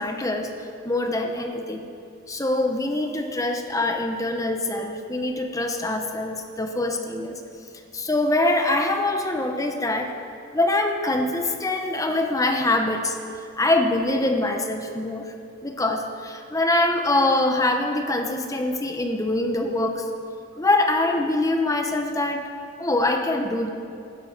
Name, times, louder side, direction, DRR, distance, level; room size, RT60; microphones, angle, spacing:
voice 1, 0.0-1.9 2.3-7.4 7.9-10.1 10.5-13.2 13.6-15.3 15.6-20.1 20.6-22.5 22.8-23.7, left 2 dB, 15° left, 4 dB, 0.9 m, -24 dB
15.5 x 12.5 x 6.0 m, 2.5 s
head